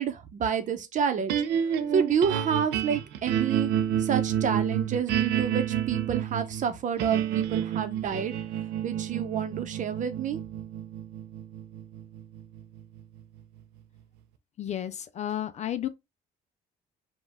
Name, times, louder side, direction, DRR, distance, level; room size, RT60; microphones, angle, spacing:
voice 1, 0.0-1.3 1.9-3.7 4.0-8.3 8.8-10.4, right 7 dB, 50° right, 0.8 m, -29 dB
sound 1, 1.3-13.6, right 10 dB, 85° right, 0.6 m, -29 dB
voice 2, 14.6-15.9, left 11 dB, 45° left, 0.4 m, -32 dB
5.1 x 2.4 x 3.6 m
cardioid pair, 110°, 17 cm